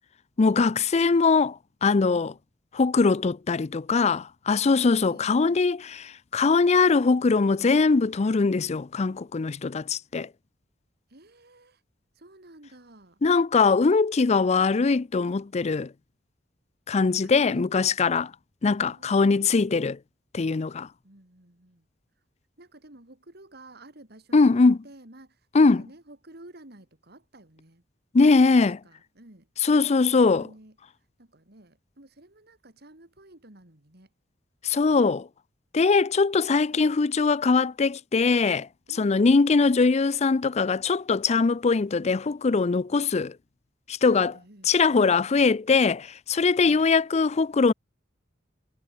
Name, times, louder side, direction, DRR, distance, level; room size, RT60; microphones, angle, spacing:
voice 1, 0.4-2.3 2.7-10.3 13.2-15.9 16.9-18.3 18.6-20.0 20.3-20.9 24.3-24.8 25.5-25.8 28.1-28.8 29.6-30.5 34.6-35.3 35.7-38.7 39.0-43.3 43.9-44.3 44.7-47.7, left 4 dB, 35° left, 0.5 m, -21 dB
voice 2, 5.0-5.6 11.1-11.8 12.1-13.2 17.2-17.7 18.9-19.5 21.0-21.9 22.6-27.8 28.5-29.7 30.0-30.8 31.2-34.1 36.7-36.9 38.9-39.2 44.3-45.5 46.6-46.9, right 1 dB, 60° right, 3.6 m, -51 dB
head